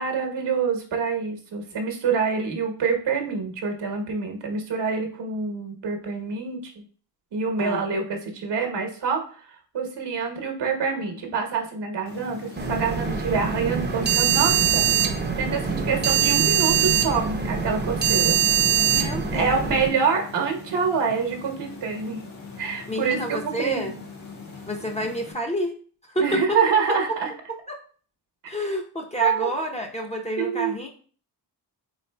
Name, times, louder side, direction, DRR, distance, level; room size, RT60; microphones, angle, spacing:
voice 1, 0.0-6.8 7.3-14.8 15.4-18.4 18.8-22.2 22.6-23.9 26.2-27.3 29.2-29.5 30.4-30.7, right 5 dB, 65° right, 2 dB, 1.1 m, -26 dB
sound 1, 12.1-25.3, left 4 dB, 50° left, 1.3 m, -42 dB
sound 2, 12.6-19.9, right 8 dB, 25° right, 0.7 m, -23 dB
voice 2, 18.8-19.8 22.9-23.9 24.7-25.7 26.0-26.6 27.7-27.8 28.5-30.9, equal, 15° left, 0 dB, 0.7 m, -29 dB
4.1 x 3.7 x 2.2 m, 0.43 s
cardioid pair, 70°, 45 cm